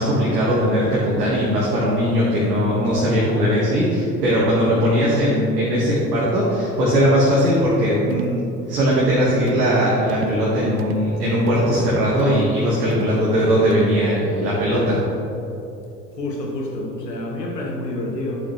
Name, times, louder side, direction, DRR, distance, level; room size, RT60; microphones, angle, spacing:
voice 1, 0.0-15.0, equal, 70° right, -6 dB, 1.9 m, -19 dB
sound 1, 7.5-7.7 8.1-8.4 8.8-9.0 9.5-9.8 10.1-10.4 10.8-11.1 11.5-11.8 12.2-12.5 12.9-13.2 13.7-14.0, right 9 dB, 25° right, 0.3 m, -34 dB
voice 2, 16.1-18.5, left 1 dB, 75° left, 0 dB, 1.6 m, -28 dB
11.5 x 7.1 x 3.3 m, 2.8 s
figure-of-eight pair, 75°, 49 cm